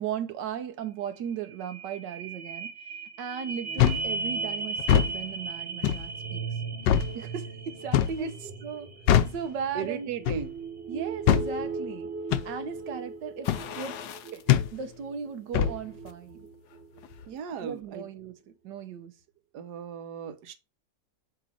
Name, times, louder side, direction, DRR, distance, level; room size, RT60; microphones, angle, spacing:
voice 1, 0.0-2.7 3.2-6.4 7.1-8.9 9.3-10.1 10.9-12.1 12.4-14.0 14.3-14.4 14.7-16.4 17.6-18.4 18.6-19.1, right 7 dB, 85° right, 1.5 m, -36 dB
sound 1, 0.8-0.9 1.2-17.1 17.6-17.7, right 4 dB, 40° right, 1.2 m, -37 dB
sound 2, 3.8-4.1 4.8-5.1 5.8-6.1 6.9-7.1 7.9-8.2 9.1-9.4 10.3-10.5 11.3-11.5 12.3-12.5 13.5-13.7 14.5-14.7 15.5-15.8, left 10 dB, 85° left, 1.3 m, -22 dB
voice 2, 9.7-10.6 17.3-18.1 19.5-20.5, right 7 dB, 70° right, 1.5 m, -36 dB
sound 3, 13.4-14.5 14.9-15.0 16.5-17.3 17.7-17.8, left 9 dB, 70° left, 1.3 m, -42 dB
7.9 x 3.0 x 6.1 m
omnidirectional pair, 1.9 m